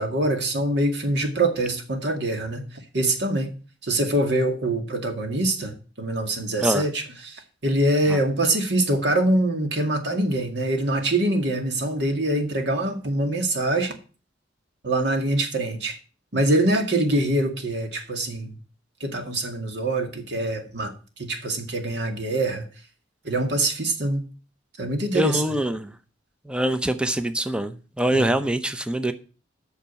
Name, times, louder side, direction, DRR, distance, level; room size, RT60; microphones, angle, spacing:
voice 1, 0.0-3.5 3.8-13.9 14.8-16.0 16.3-18.6 19.0-22.7 23.2-24.2 24.8-25.4 28.1-28.4, right 1 dB, 60° right, 2.1 m, -24 dB
voice 2, 25.1-25.9 26.5-29.1, right 1 dB, 5° right, 0.7 m, -24 dB
8.7 x 6.4 x 8.1 m
head